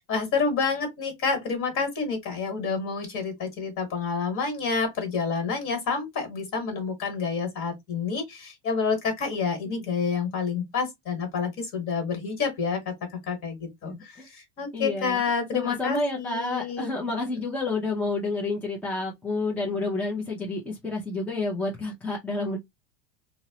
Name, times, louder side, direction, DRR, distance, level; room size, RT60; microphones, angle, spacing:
voice 1, 0.0-16.9, left 5 dB, 45° left, 1.3 m, -29 dB
voice 2, 13.8-14.2 14.7-15.2 15.5-22.6, left 3 dB, 5° left, 0.5 m, -29 dB
2.7 x 2.0 x 2.7 m
supercardioid pair, 140°, 31 cm